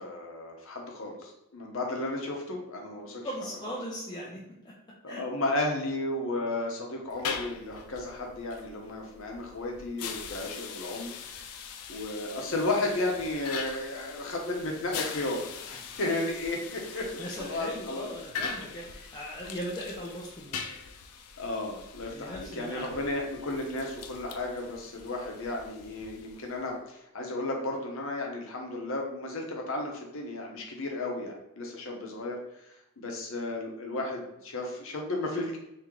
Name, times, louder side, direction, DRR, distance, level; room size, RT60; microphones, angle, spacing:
voice 1, 0.0-3.3 5.0-11.1 11.5-18.1 21.4-35.6, left 2 dB, 60° left, 1 dB, 0.8 m, -34 dB
voice 2, 3.2-4.4 4.6-4.7 5.1-5.2 16.9-20.7 22.1-23.0, equal, 20° left, -4 dB, 0.4 m, -39 dB
sound 1, 7.1-26.7, left 6 dB, 85° left, 0.4 m, -42 dB
3.6 x 2.8 x 3.0 m, 0.85 s
head